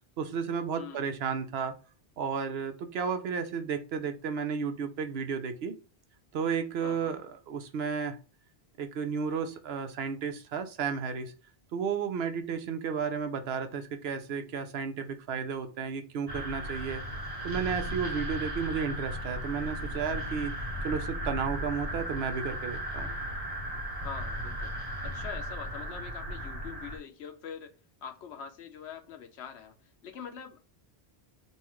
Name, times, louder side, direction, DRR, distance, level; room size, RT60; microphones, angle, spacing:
voice 1, 0.2-1.8 2.2-5.7 6.3-8.2 8.8-11.3 11.7-17.0 17.4-20.5 20.8-23.1, right 6 dB, 75° right, 0.8 m, -33 dB
voice 2, 6.8-7.1 24.0-24.7 25.0-27.7 28.0-29.7 30.0-30.6, left 7 dB, 80° left, 1.0 m, -43 dB
sound 1, 16.3-27.0, equal, 40° right, 0.9 m, -36 dB
5.4 x 2.4 x 3.0 m
omnidirectional pair, 1.1 m